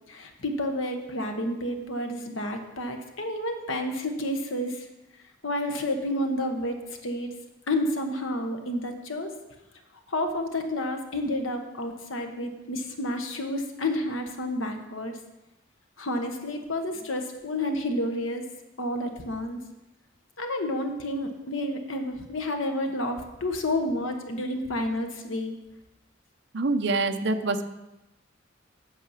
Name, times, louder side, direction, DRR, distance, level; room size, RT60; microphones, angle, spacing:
voice 1, 0.1-4.9 5.4-6.8 7.0-7.3 7.7-9.3 10.1-15.1 16.0-18.4 18.8-19.6 20.4-25.6, left 1 dB, 80° left, 5 dB, 1.2 m, -30 dB
voice 2, 26.5-27.7, right 3 dB, 60° right, 7 dB, 0.7 m, -25 dB
8.4 x 7.4 x 5.7 m, 1.0 s
head